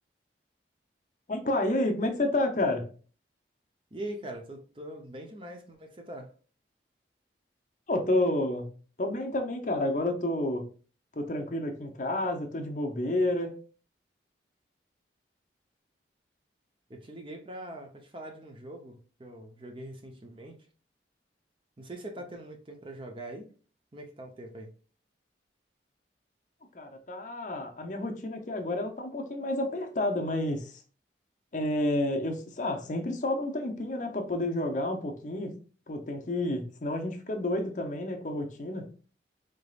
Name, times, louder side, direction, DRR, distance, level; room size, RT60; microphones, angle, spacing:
voice 1, 1.3-2.9 7.9-10.6 11.1-13.5 26.7-30.8 31.5-35.5 35.9-38.9, left 1 dB, 45° left, 0.6 m, -30 dB
voice 2, 3.9-6.3 16.9-20.6 21.8-23.5 23.9-24.7, right 1 dB, 30° right, 0.7 m, -42 dB
4.0 x 3.4 x 2.4 m
head